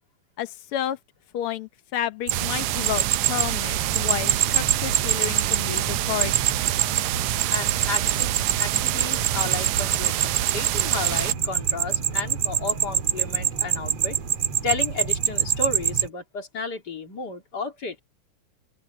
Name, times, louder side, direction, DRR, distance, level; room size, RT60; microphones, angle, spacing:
voice 1, 0.4-1.0 1.3-6.3, left 11 dB, 90° left, 1.2 m, -31 dB
sound 1, 2.3-16.1, right 11 dB, 50° right, 2.9 m, -26 dB
sound 2, 2.3-11.3, right 17 dB, 80° right, 1.7 m, -27 dB
voice 2, 7.5-14.2 14.6-18.0, left 4 dB, 30° left, 3.2 m, -33 dB
open air
omnidirectional pair, 3.9 m